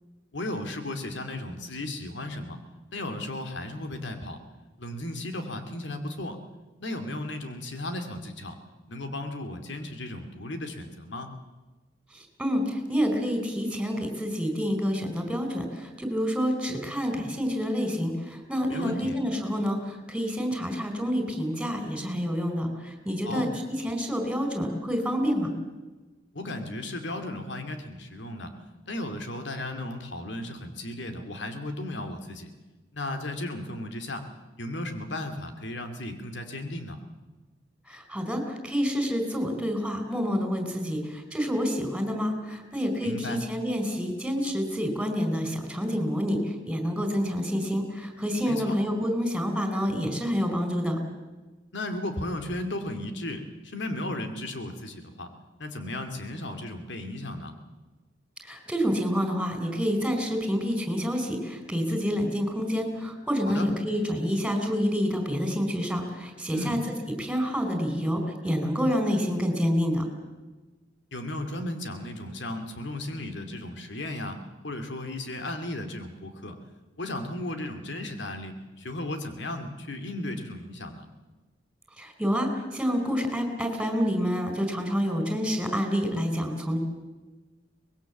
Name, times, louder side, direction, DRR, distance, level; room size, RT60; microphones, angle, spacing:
voice 1, 0.3-2.6 2.9-4.4 4.8-6.4 6.8-8.6 8.9-11.3 18.7-19.2 23.2-23.5 26.3-28.5 28.9-32.5 32.9-34.3 34.6-37.0 43.0-43.4 48.5-48.8 51.7-55.3 55.6-57.5 63.4-63.7 66.5-66.8 71.1-76.6 77.0-81.1, left 1 dB, 70° left, 7 dB, 2.4 m, -35 dB
voice 2, 12.1-25.5 37.9-51.0 58.4-70.0 82.0-86.8, equal, 5° right, 5 dB, 4.5 m, -28 dB
24.5 x 20.5 x 7.3 m, 1.2 s
head